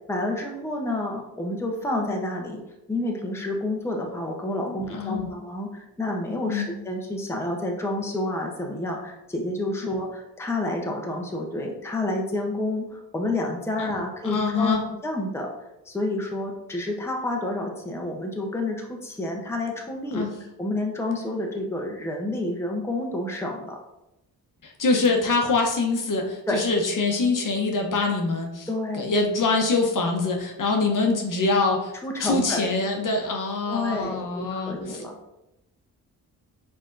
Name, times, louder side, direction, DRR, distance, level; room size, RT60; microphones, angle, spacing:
voice 1, 0.1-2.6 2.9-14.8 15.0-15.5 15.9-20.3 20.6-23.8 26.5-26.6 28.7-29.1 32.0-32.7 33.7-35.2, left 1 dB, 5° left, 0 dB, 0.8 m, -29 dB
voice 2, 4.7-5.4 6.5-6.7 9.8-9.9 13.8-13.9 14.2-14.8 20.1-20.3 24.6-28.7 28.9-31.9 32.2-35.0, left 3 dB, 50° left, 2 dB, 0.9 m, -24 dB
5.3 x 3.5 x 2.6 m, 0.91 s
cardioid pair, 75°, 41 cm